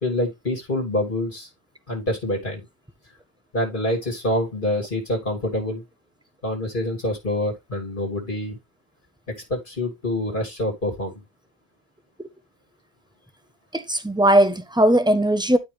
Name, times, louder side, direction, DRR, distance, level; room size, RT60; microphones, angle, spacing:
voice 1, 0.0-1.5 1.9-2.6 3.5-5.8 6.4-8.6 9.5-11.1, left 1 dB, 50° left, 2.9 m, -26 dB
voice 2, 13.7-15.6, right 1 dB, 5° right, 1.1 m, -18 dB
11.5 x 4.8 x 3.3 m
omnidirectional pair, 1.1 m